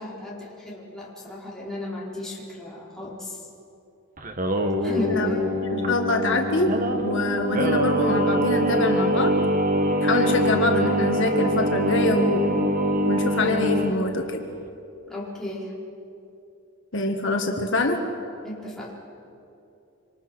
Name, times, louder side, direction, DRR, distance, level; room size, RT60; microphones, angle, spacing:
voice 1, 0.0-3.4 4.8-5.7 15.1-15.7 18.4-18.9, left 1 dB, 5° left, -6 dB, 4.6 m, -34 dB
Singing, 4.2-13.9, equal, 40° right, 1.5 m, -23 dB
voice 2, 5.7-9.3 10.0-12.7 13.0-14.5 16.9-18.0, left 2 dB, 65° left, 3 dB, 1.7 m, -25 dB
26.5 x 25.5 x 6.3 m, 2.7 s
head